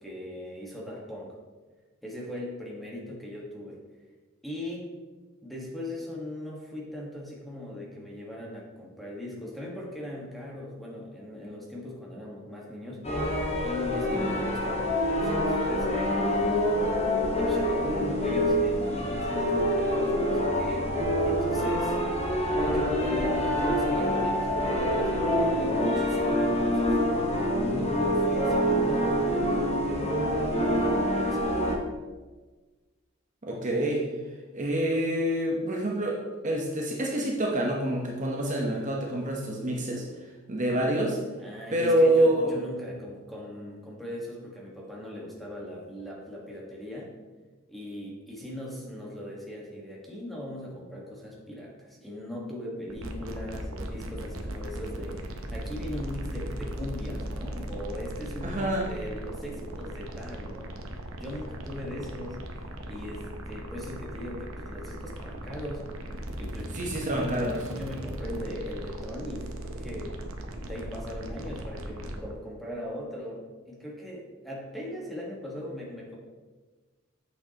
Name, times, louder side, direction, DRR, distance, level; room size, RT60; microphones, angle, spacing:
voice 1, 0.0-1.4 2.0-3.8 4.4-4.9 5.4-13.1 13.6-17.1 17.4-22.0 22.6-27.0 27.6-31.6 41.4-47.2 47.7-62.4 62.9-66.0 66.4-66.7 67.1-70.1 70.6-76.2, left 1 dB, ahead, -4 dB, 1.4 m, -39 dB
sound 1, 13.0-31.8, equal, 30° left, 1.1 m, -26 dB
voice 2, 33.4-34.1 34.5-36.2 36.4-40.0 40.5-41.2 41.7-42.5 58.4-58.9 66.7-67.6, right 1 dB, 40° right, -1 dB, 0.9 m, -26 dB
sound 2, 52.9-72.3, right 1 dB, 80° right, 0.8 m, -38 dB
7.9 x 6.5 x 2.9 m, 1.3 s
head